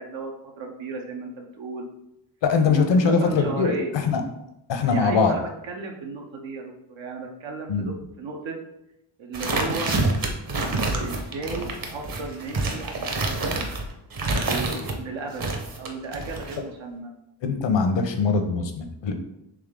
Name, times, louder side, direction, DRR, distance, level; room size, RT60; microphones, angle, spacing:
voice 1, 0.0-1.9 2.6-4.0 4.8-8.6 9.2-9.9 10.6-13.6 14.4-15.4 15.8-17.1, right 3 dB, 85° right, 1 dB, 0.7 m, -34 dB
voice 2, 2.4-4.2 4.7-5.4 7.7-7.9 17.4-19.1, left 5 dB, 75° left, 6 dB, 0.7 m, -22 dB
sound 1, 9.3-15.0 15.4-16.6, right 2 dB, 50° right, 0.8 m, -27 dB
3.7 x 3.2 x 3.5 m, 0.87 s
cardioid pair, 80°, 45 cm